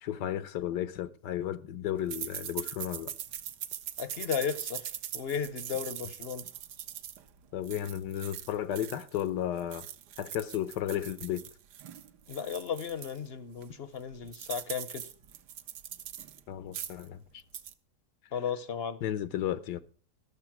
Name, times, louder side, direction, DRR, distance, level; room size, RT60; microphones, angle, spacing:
voice 1, 0.0-3.1 7.5-9.9 10.2-11.4 16.5-17.2 19.0-19.8, left 11 dB, 85° left, 1.4 m, -33 dB
sound 1, 2.1-9.3 9.6-13.2 13.6-13.7 14.0-16.4 16.7-17.1 17.4-17.7, right 10 dB, 75° right, 1.4 m, -42 dB
voice 2, 4.0-6.5 12.3-15.1 18.3-19.0, left 7 dB, 50° left, 0.8 m, -35 dB
13.5 x 6.9 x 5.8 m
omnidirectional pair, 1.8 m